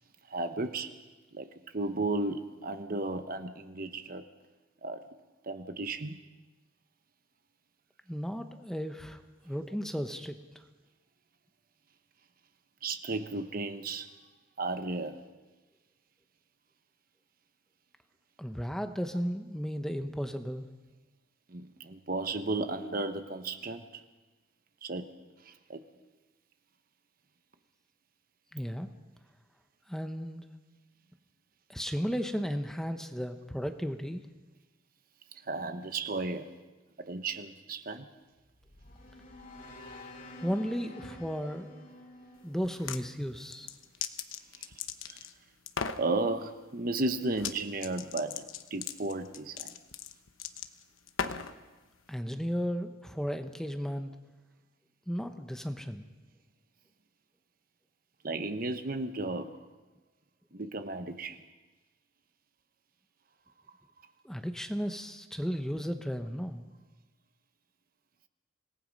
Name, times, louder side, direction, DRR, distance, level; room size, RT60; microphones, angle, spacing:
voice 1, 0.3-1.0 1.3-4.2 4.8-5.0 5.4-6.2 12.8-14.1 14.6-15.2 21.5-24.0 24.8-25.1 25.4-25.8 35.4-36.6 37.1-38.1 44.6-44.7 45.1-45.3 46.0-49.7 58.2-59.7 60.5-61.4, right 2 dB, 45° right, 9 dB, 1.0 m, -34 dB
voice 2, 8.1-10.4 18.4-20.7 28.5-28.9 29.9-30.4 31.7-34.3 40.4-41.7 42.4-43.7 52.1-54.1 55.1-56.0 64.2-66.7, equal, 5° left, 7 dB, 0.9 m, -34 dB
sound 1, 38.3-43.6, left 1 dB, 45° left, 2.3 m, -49 dB
sound 2, 42.6-43.0 43.5-45.3 45.7-46.0 47.3-47.6 47.8-51.6, left 7 dB, 90° left, 1.1 m, -37 dB
26.5 x 18.5 x 5.3 m, 1.2 s
head